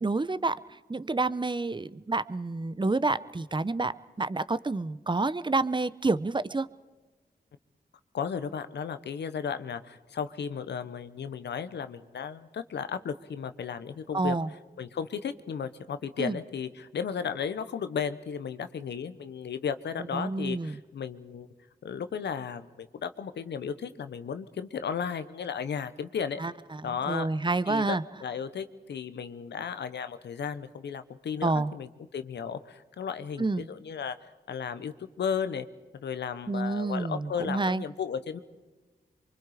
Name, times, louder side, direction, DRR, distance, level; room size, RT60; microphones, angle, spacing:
voice 1, 0.0-0.6 0.9-6.7 14.1-14.5 16.2-16.4 20.1-20.8 26.4-26.5 27.1-28.0 31.4-31.7 33.4-33.7 36.5-37.8, right 3 dB, 25° right, 15 dB, 0.8 m, -28 dB
voice 2, 8.1-14.4 14.8-21.5 21.8-26.4 26.8-27.3 27.7-35.7 35.9-38.4, left 7 dB, 85° left, 11 dB, 1.0 m, -34 dB
24.0 x 24.0 x 5.0 m, 1.2 s
cardioid pair, 40°, 17 cm